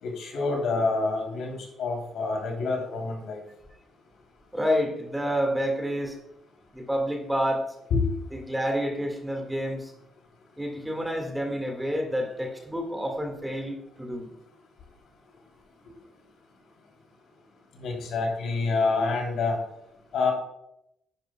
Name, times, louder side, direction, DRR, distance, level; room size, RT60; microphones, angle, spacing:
voice 1, 0.0-3.4 7.9-8.0 17.8-19.6 20.1-20.3, left 3 dB, 75° left, 1 dB, 3.0 m, -27 dB
voice 2, 4.5-6.1 6.7-7.6 8.3-9.9 10.6-14.3, equal, 5° right, 3 dB, 1.8 m, -29 dB
10.5 x 10.0 x 2.2 m, 0.82 s
cardioid pair, 90°, 0 cm